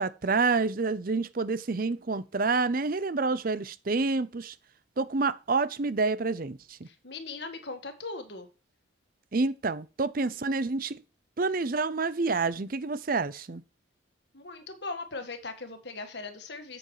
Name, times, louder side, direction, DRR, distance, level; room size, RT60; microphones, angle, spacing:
voice 1, 0.0-4.5 5.0-6.8 9.3-10.9 11.4-13.6, right 3 dB, 45° right, 0.6 m, -28 dB
voice 2, 6.9-8.5 14.3-16.8, left 3 dB, 60° left, 1.7 m, -39 dB
8.7 x 7.9 x 3.2 m
head